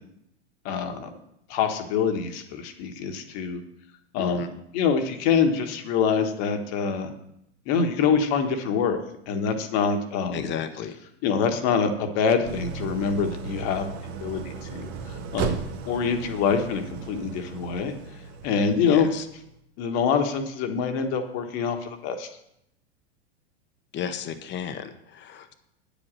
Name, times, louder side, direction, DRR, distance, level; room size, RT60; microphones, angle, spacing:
voice 1, 0.6-1.1 1.5-3.6 4.1-4.5 4.7-7.1 7.7-9.0 9.3-10.5 11.2-13.9 14.2-14.9 15.3-15.6 15.9-16.8 17.1-17.9 18.4-19.1 19.8-22.3, left 6 dB, 50° left, 6 dB, 1.5 m, -25 dB
voice 2, 4.2-4.5 10.3-10.9 18.9-19.3 23.9-25.5, left 8 dB, 35° left, 9 dB, 1.1 m, -33 dB
Idling, 12.4-19.5, right 5 dB, 50° right, 1.2 m, -36 dB
9.3 x 5.2 x 7.5 m, 0.78 s
hypercardioid pair, 95°, 34 cm